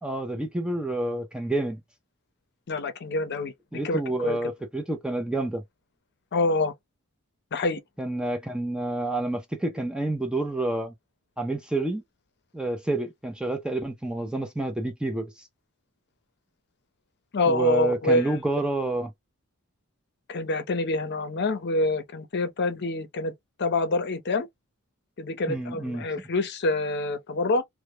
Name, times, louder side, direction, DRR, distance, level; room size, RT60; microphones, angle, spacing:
voice 1, 0.0-1.8 3.7-5.6 8.0-10.9 11.4-12.0 12.5-15.5 17.5-19.1 25.5-26.0, right 2 dB, 5° right, 0.3 m, -29 dB
voice 2, 2.7-3.5 3.8-4.5 6.3-6.7 7.5-7.8 17.3-18.3 20.3-23.3 23.6-24.5 25.2-27.6, left 2 dB, 50° left, 0.6 m, -26 dB
2.1 x 2.0 x 2.9 m
head